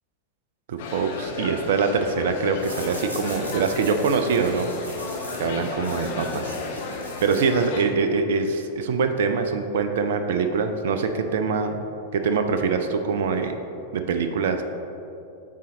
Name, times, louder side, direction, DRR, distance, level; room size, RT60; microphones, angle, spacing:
voice 1, 0.7-4.7 5.4-6.6 7.2-11.8 12.1-13.6 13.9-14.6, right 5 dB, 55° right, 7 dB, 0.4 m, -24 dB
sound 1, 0.8-7.8, left 3 dB, 55° left, 0.7 m, -34 dB
sound 2, 2.6-7.9, equal, 80° right, 1.4 m, -41 dB
7.3 x 4.3 x 3.7 m, 2.8 s
figure-of-eight pair, 90°, 0 cm